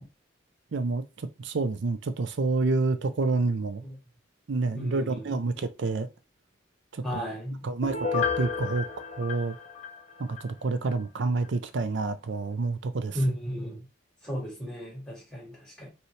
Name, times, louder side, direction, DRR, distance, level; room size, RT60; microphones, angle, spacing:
voice 1, 0.7-1.0 1.4-3.8 4.5-6.1 6.9-7.0 7.6-8.9 9.2-9.6 10.2-13.2, right 3 dB, 60° right, 0.5 m, -28 dB
voice 2, 4.7-5.4 7.0-7.7 13.1-13.9 14.2-15.9, equal, 5° left, 2.2 m, -34 dB
Piano, 7.8-10.5 10.9-11.0, left 6 dB, 35° left, 0.9 m, -32 dB
5.4 x 3.1 x 3.1 m
head